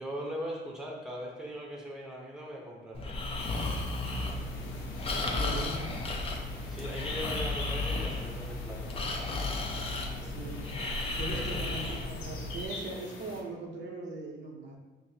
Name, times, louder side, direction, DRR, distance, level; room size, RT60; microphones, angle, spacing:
voice 1, 0.0-3.0 6.7-8.9 11.3-11.7, equal, 5° right, -2 dB, 0.8 m, -40 dB
Breathing, 2.9-12.6, left 2 dB, 30° left, 0.5 m, -34 dB
sound 1, 3.4-13.4, left 3 dB, 90° left, 0.6 m, -46 dB
voice 2, 5.3-5.9 10.2-10.8 11.2-14.8, right 2 dB, 65° right, -1 dB, 0.7 m, -40 dB
5.6 x 2.0 x 2.7 m, 1.3 s
cardioid pair, 90°, 20 cm